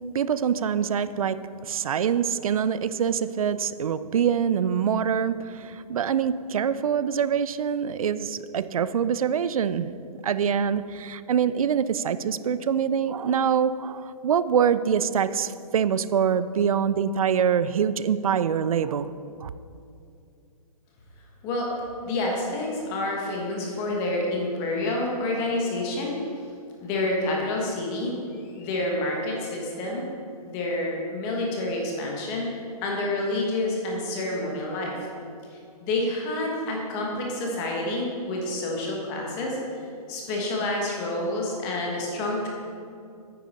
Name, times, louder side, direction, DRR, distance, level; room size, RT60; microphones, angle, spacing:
voice 1, 0.1-9.9 10.2-19.1 19.4-19.5, right 7 dB, 60° right, 15 dB, 0.4 m, -25 dB
voice 2, 22.0-26.1 26.8-28.1 28.5-30.0 30.4-32.5 32.8-35.0 35.8-39.6 40.1-42.5, left 2 dB, 15° left, -1 dB, 1.1 m, -28 dB
9.6 x 8.2 x 4.2 m, 2.5 s
hypercardioid pair, 170°, 20 cm